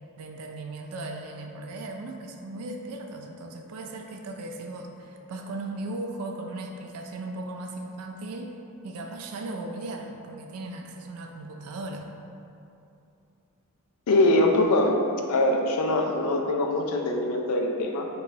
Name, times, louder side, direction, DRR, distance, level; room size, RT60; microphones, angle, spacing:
voice 1, 0.2-8.6 8.8-12.0, right 2 dB, 80° right, 3 dB, 0.3 m, -37 dB
voice 2, 14.1-15.0 15.3-18.1, left 2 dB, 85° left, 3 dB, 0.4 m, -23 dB
3.0 x 2.8 x 2.6 m, 2.6 s
head